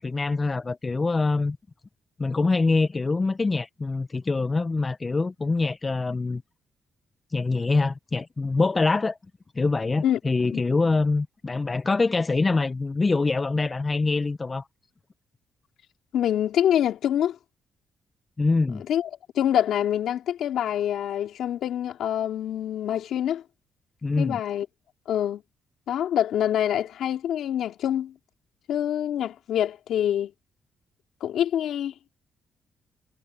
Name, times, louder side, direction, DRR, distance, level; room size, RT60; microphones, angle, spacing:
voice 1, 0.0-1.6 2.2-6.4 7.3-9.2 9.6-14.7 18.4-18.8 24.0-24.4, left 3 dB, 25° left, 0.5 m, -24 dB
voice 2, 16.1-17.4 18.9-19.1 19.3-23.4 24.2-24.7 25.1-25.4 25.9-28.1 28.7-30.3 31.2-31.9, left 10 dB, 80° left, 3.0 m, -25 dB
cardioid pair, 125°, 0 cm